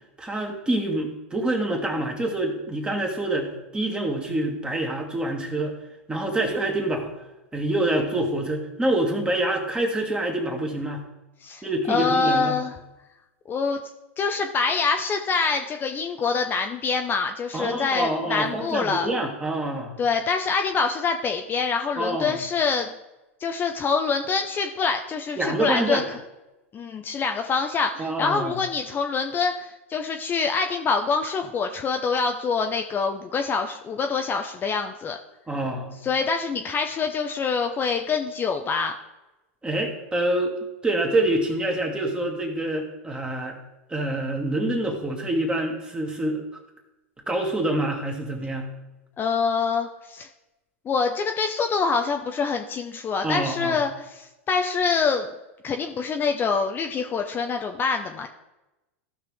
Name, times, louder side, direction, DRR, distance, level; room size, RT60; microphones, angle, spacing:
voice 1, 0.2-5.8 6.1-7.1 7.5-11.0 11.6-12.6 17.5-20.0 22.0-22.4 25.4-26.0 28.0-28.6 35.5-36.0 39.6-43.6 43.9-46.5 47.3-48.7 53.2-53.8, right 1 dB, 15° right, 2 dB, 2.1 m, -26 dB
voice 2, 11.9-12.7 13.5-13.8 14.2-19.1 20.0-22.9 23.4-26.2 26.7-35.2 36.0-38.9 49.2-50.3 50.9-55.3 55.6-58.3, left 5 dB, 30° left, 5 dB, 0.7 m, -25 dB
15.0 x 5.9 x 3.6 m, 1.0 s
hypercardioid pair, 100°, 7 cm